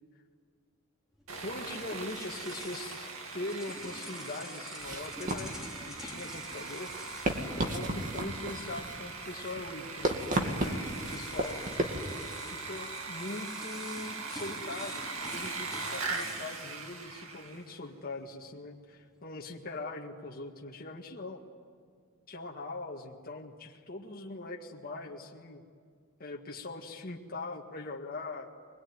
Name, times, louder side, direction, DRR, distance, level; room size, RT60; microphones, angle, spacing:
sound 1, 1.1-8.4 8.7-8.9 10.0-10.1 10.6-17.7, left 2 dB, 5° right, 3.4 m, -49 dB
Sawing, 1.3-17.7, right 4 dB, 80° right, 2.4 m, -41 dB
voice 1, 1.4-6.9 7.5-11.6 12.5-21.4 22.3-25.6 26.2-28.5, left 2 dB, 45° left, 0 dB, 1.8 m, -41 dB
sound 2, 4.8-12.0, right 1 dB, 40° right, 2.3 m, -35 dB
23.5 x 21.0 x 9.5 m, 2.1 s
head